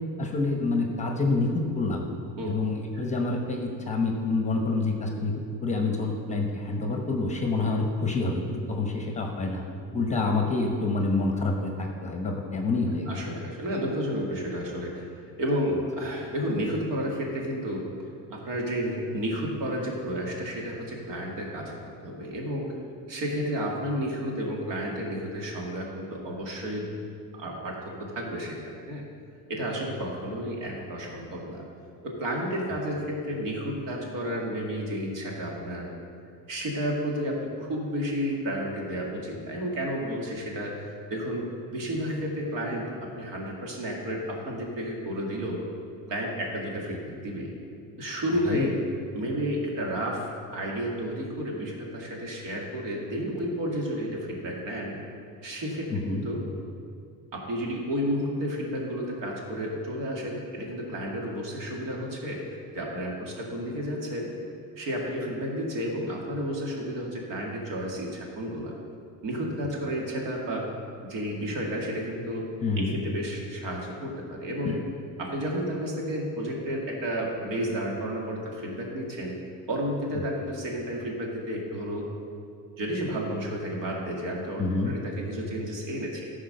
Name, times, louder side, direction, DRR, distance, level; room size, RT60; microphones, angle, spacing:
voice 1, 0.2-2.1 2.4-5.3 5.6-9.6 9.9-13.1 46.9-47.0 48.5-48.7 55.9-56.2 72.6-72.9 74.6-74.8 84.6-84.9, left 3 dB, 20° left, 2 dB, 0.9 m, -27 dB
voice 2, 13.1-17.8 18.3-22.7 23.1-26.9 27.4-29.0 29.5-31.7 32.0-35.9 36.5-45.6 46.1-47.5 48.0-48.8 49.1-54.9 55.4-56.4 57.3-62.4 62.7-64.3 64.8-68.7 69.2-70.7 71.0-72.4 72.8-74.7 75.2-79.4 79.7-82.1 82.8-86.2, equal, 60° right, -1 dB, 2.3 m, -31 dB
13.0 x 5.0 x 6.6 m, 2.4 s
cardioid pair, 150°, 37 cm